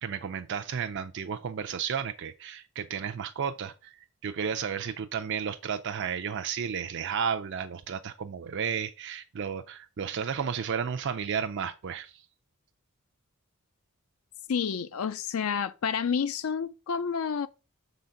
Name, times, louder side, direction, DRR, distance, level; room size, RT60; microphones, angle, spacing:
voice 1, 0.0-12.2, right 7 dB, 55° right, 0.4 m, -33 dB
voice 2, 14.5-17.5, left 6 dB, 70° left, 0.4 m, -29 dB
7.2 x 3.9 x 5.7 m
head